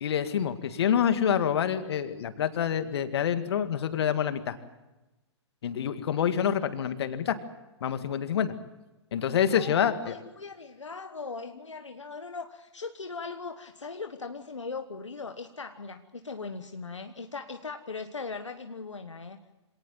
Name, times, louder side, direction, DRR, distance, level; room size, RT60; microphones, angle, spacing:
voice 1, 0.0-4.6 5.6-7.4 7.8-8.5 9.1-10.1, left 8 dB, 60° left, 9 dB, 2.1 m, -27 dB
voice 2, 9.5-19.4, left 4 dB, 85° left, 7 dB, 1.3 m, -39 dB
26.0 x 18.5 x 7.4 m, 1.0 s
figure-of-eight pair, 115°, 15 cm